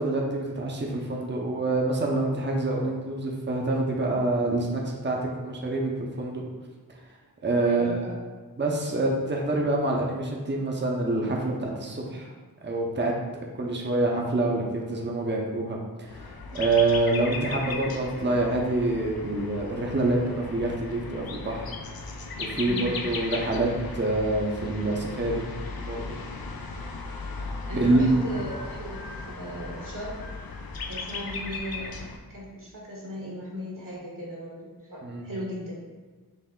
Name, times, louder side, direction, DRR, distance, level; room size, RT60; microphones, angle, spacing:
voice 1, 0.0-6.4 7.4-7.9 8.6-12.3 12.6-13.1 13.6-16.3 16.5-22.0 22.4-25.4 25.8-26.2 27.7-28.2 35.0-35.2, right 2 dB, 30° right, -1 dB, 0.7 m, -26 dB
voice 2, 7.6-8.2 22.6-22.9 27.7-30.2 30.9-31.9 32.3-35.8, equal, 60° right, -4 dB, 1.2 m, -37 dB
sound 1, 16.1-32.2, left 3 dB, 70° left, 0.5 m, -37 dB
5.5 x 2.0 x 3.7 m, 1.3 s
wide cardioid pair, 40°, 37 cm